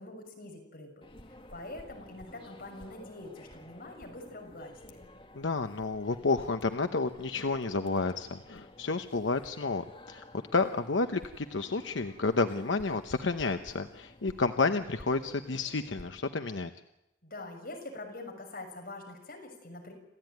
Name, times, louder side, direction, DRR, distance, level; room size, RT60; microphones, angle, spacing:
voice 1, 0.0-5.0 17.2-19.9, left 2 dB, 55° left, 1 dB, 6.5 m, -45 dB
sound 1, 1.0-16.1, left 1 dB, 30° left, 2.0 m, -53 dB
voice 2, 5.3-10.2 10.5-16.7, left 3 dB, 85° left, 8 dB, 0.9 m, -30 dB
27.5 x 15.5 x 9.4 m, 0.92 s
head